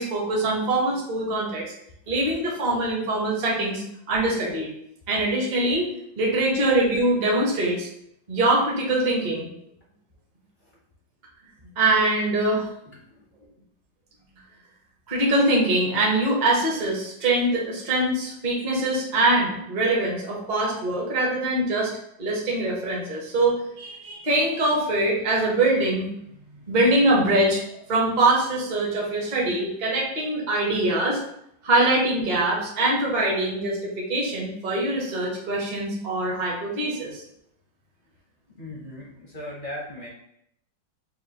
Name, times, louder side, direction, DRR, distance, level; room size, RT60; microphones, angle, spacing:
voice 1, 0.0-1.7 2.1-4.7 5.1-5.9 6.2-7.9 8.3-9.5 11.8-12.7 15.1-21.9 22.2-26.1 26.7-31.2 31.6-37.2, right 2 dB, 40° right, -3 dB, 0.6 m, -23 dB
voice 2, 38.6-40.1, left 1 dB, 50° left, -4 dB, 0.6 m, -37 dB
5.7 x 2.3 x 2.8 m, 0.76 s
omnidirectional pair, 2.1 m